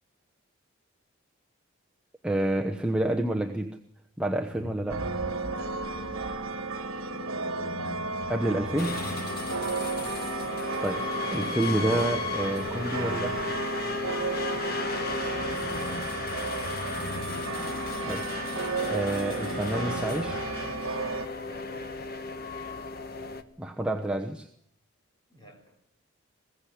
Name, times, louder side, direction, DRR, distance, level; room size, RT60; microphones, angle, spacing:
voice 1, 2.2-3.8 4.2-5.2 8.3-9.0 10.8-13.4 18.0-18.3 18.8-20.4 23.6-24.5, right 1 dB, 5° right, 1.0 m, -29 dB
sound 1, 4.5-20.5, left 3 dB, 65° left, 1.0 m, -43 dB
sound 2, 4.9-21.3, right 4 dB, 80° right, 1.5 m, -33 dB
voice 2, 5.9-6.7 15.3-16.6 21.3-22.1 22.8-22.9 25.3-25.8, right 1 dB, 20° left, 4.1 m, -51 dB
sound 3, 8.8-23.4, left 4 dB, 45° left, 1.3 m, -35 dB
21.5 x 17.0 x 8.7 m
head